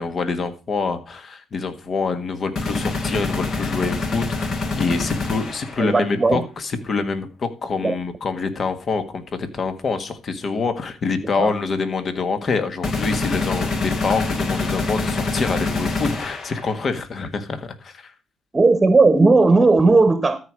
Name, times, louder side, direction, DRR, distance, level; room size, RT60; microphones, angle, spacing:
voice 1, 0.0-18.1, left 4 dB, 45° left, 9 dB, 1.7 m, -26 dB
sound 1, 2.5-5.9 12.8-16.9, left 3 dB, 60° left, 4.3 m, -25 dB
voice 2, 5.8-6.4 7.8-8.0 11.4-11.5 18.5-20.4, right 3 dB, 20° right, 11 dB, 1.2 m, -16 dB
13.5 x 4.9 x 6.2 m, 0.32 s
cardioid pair, 90°, 0 cm